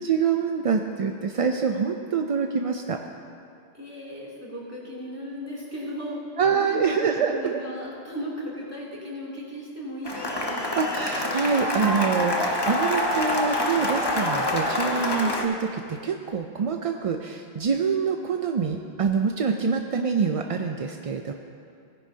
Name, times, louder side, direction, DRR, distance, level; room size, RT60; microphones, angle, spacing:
voice 1, 0.0-3.0 6.4-7.6 10.8-21.3, right 5 dB, 50° right, 4 dB, 0.4 m, -25 dB
voice 2, 3.7-6.2 6.5-7.0 7.3-10.7, equal, 15° right, -6 dB, 2.8 m, -36 dB
Cheering / Applause, 10.1-15.5, left 1 dB, 25° left, 0.9 m, -26 dB
18.0 x 9.9 x 2.8 m, 2.5 s
omnidirectional pair, 1.1 m